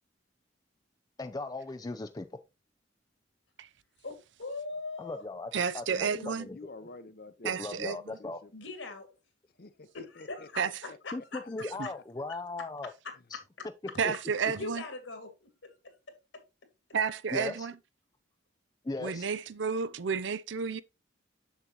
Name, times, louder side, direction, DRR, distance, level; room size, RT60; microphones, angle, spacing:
voice 1, 1.2-2.3 5.0-6.6 7.4-8.4 11.1-12.9 13.3-13.4 14.0-14.1 17.3-17.7 18.8-19.3, left 2 dB, 20° left, 0.4 m, -38 dB
voice 2, 4.0-5.2 8.5-9.2 9.9-11.4 11.7-11.9 13.0-13.7 14.5-16.5, left 3 dB, 70° left, 2.3 m, -42 dB
voice 3, 5.5-6.5 7.4-8.2 10.6-10.7 11.6-11.9 14.0-14.8 16.9-17.7 19.0-20.8, right 6 dB, 65° right, 0.5 m, -31 dB
voice 4, 6.4-7.6 8.2-8.5 9.6-11.8, left 3 dB, 50° left, 0.8 m, -50 dB
7.3 x 7.0 x 2.9 m
head